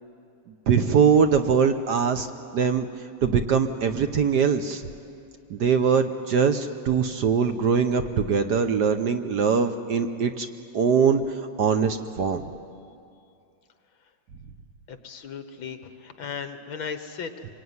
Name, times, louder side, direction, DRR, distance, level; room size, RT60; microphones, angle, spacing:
voice 1, 0.7-2.3 2.5-2.9 3.2-4.8 5.5-10.5 10.7-12.4, right 6 dB, 60° right, 8 dB, 1.3 m, -22 dB
voice 2, 14.9-17.5, left 6 dB, 65° left, 8 dB, 2.1 m, -36 dB
26.0 x 23.5 x 9.6 m, 2.5 s
omnidirectional pair, 2.4 m